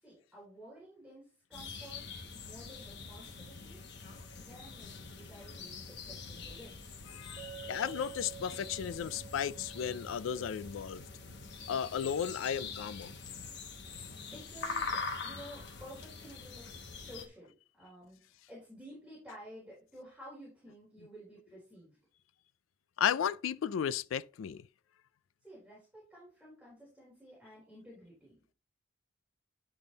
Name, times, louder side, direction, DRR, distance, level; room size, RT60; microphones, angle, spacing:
voice 1, 0.0-2.0 2.3-3.8 4.4-6.8 14.3-22.0 25.4-28.5, equal, 5° right, 3.9 m, -53 dB
sound 1, 1.5-17.3, left 4 dB, 60° left, 1.0 m, -44 dB
Chink clink, 7.4-11.8, right 8 dB, 50° right, 1.7 m, -51 dB
voice 2, 7.7-11.0 11.7-13.1 23.0-24.6, left 8 dB, 85° left, 0.4 m, -34 dB
10.5 x 3.5 x 4.0 m
head